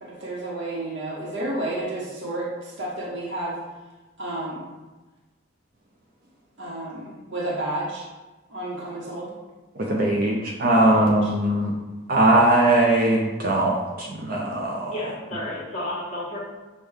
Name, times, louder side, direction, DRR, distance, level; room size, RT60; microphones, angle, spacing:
voice 1, 0.0-3.6 4.2-4.6 6.6-8.0 8.5-9.3 10.8-11.3, right 1 dB, 65° right, -6 dB, 0.8 m, -31 dB
voice 2, 9.8-11.7 12.1-14.9, right 1 dB, 45° right, -2 dB, 0.5 m, -20 dB
voice 3, 14.9-16.4, left 1 dB, 35° left, -7 dB, 1.1 m, -31 dB
6.2 x 2.2 x 3.4 m, 1.2 s
head